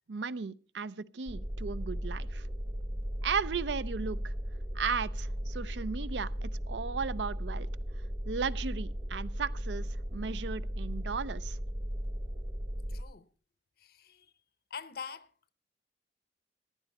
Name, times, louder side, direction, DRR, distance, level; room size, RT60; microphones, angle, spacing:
voice 1, 0.1-2.4 3.2-4.3 4.7-7.7 8.3-11.6, right 5 dB, 80° right, 0.5 m, -35 dB
sound 1, 1.3-13.0, equal, 35° right, 1.1 m, -36 dB
voice 2, 12.9-13.3 13.8-14.3 14.7-15.5, left 6 dB, 60° left, 0.8 m, -45 dB
14.5 x 11.5 x 4.1 m
head